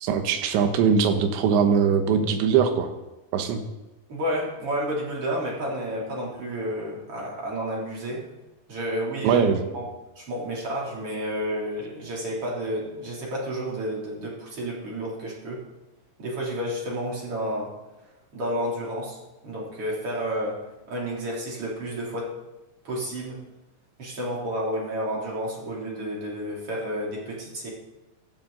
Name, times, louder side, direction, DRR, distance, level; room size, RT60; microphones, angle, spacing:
voice 1, 0.0-2.9 3.3-3.6 9.2-9.7, right 6 dB, 85° right, 7 dB, 3.4 m, -21 dB
voice 2, 4.1-8.2 8.7-9.4 9.7-9.8 10.2-15.6 16.2-17.7 18.3-19.2 19.4-20.6 20.9-22.3 22.8-23.4 24.0-27.7, equal, 35° right, -4 dB, 3.6 m, -30 dB
15.0 x 13.0 x 3.9 m, 1.0 s
omnidirectional pair, 5.1 m